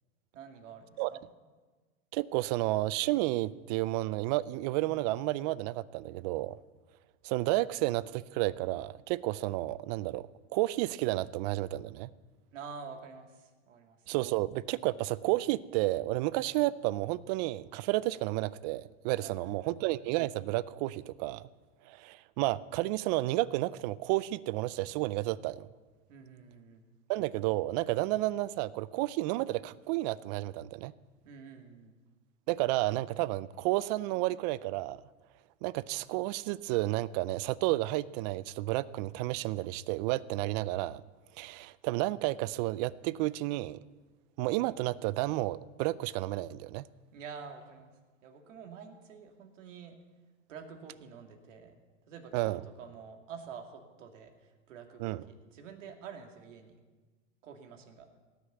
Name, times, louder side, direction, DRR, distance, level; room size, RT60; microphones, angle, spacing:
voice 1, 0.3-1.3 12.5-14.1 19.2-19.9 26.1-26.8 31.2-31.9 47.1-47.9 48.2-50.0 50.5-51.7 52.1-56.7 57.4-58.1, right 6 dB, 70° right, 4 dB, 2.3 m, -48 dB
voice 2, 2.1-6.6 7.2-10.3 10.5-12.1 14.1-21.4 21.9-25.7 27.1-30.9 32.5-35.0 35.6-41.0 41.4-43.8 44.4-46.8 52.3-52.6 55.0-55.2, right 18 dB, 35° right, 20 dB, 0.4 m, -31 dB
17.5 x 6.6 x 8.0 m, 1.3 s
hypercardioid pair, 125°, 38 cm